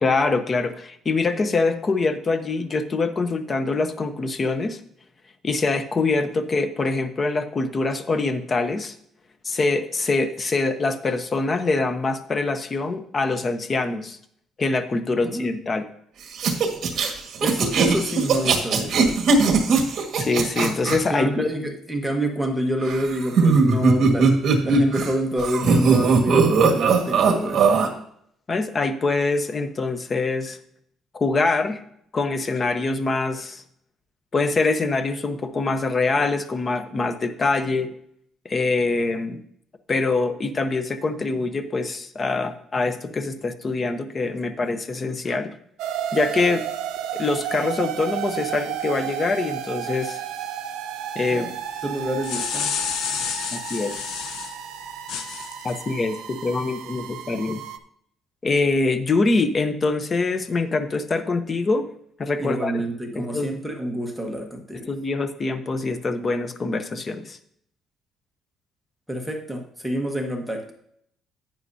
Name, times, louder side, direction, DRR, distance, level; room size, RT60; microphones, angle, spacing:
voice 1, 0.0-4.8 5.4-9.0 9.4-14.2 14.6-15.9 20.2-21.6 28.5-30.6 31.1-31.8 32.1-33.6 34.3-37.9 38.4-39.4 39.9-45.5 46.1-46.6 47.1-50.2 51.1-51.5 53.5-53.9 55.6-57.6 58.4-61.8 62.2-62.7 63.1-63.5 64.9-67.4, left 3 dB, 25° left, 10 dB, 0.7 m, -24 dB
sound 1, 16.3-21.0 22.8-25.1 25.4-27.9, right 4 dB, 50° right, 1.7 m, -19 dB
voice 2, 17.4-19.0 21.1-24.4 24.6-27.8 51.3-51.5 51.8-52.7 62.4-64.9 69.1-70.7, equal, ahead, 2 dB, 1.3 m, -27 dB
sound 2, 45.8-57.8, right 10 dB, 90° right, 0.7 m, -32 dB
sound 3, 52.0-54.6 55.1-55.8, left 8 dB, 70° left, 0.7 m, -29 dB
11.0 x 8.9 x 2.7 m, 0.68 s
cardioid pair, 150°, 0 cm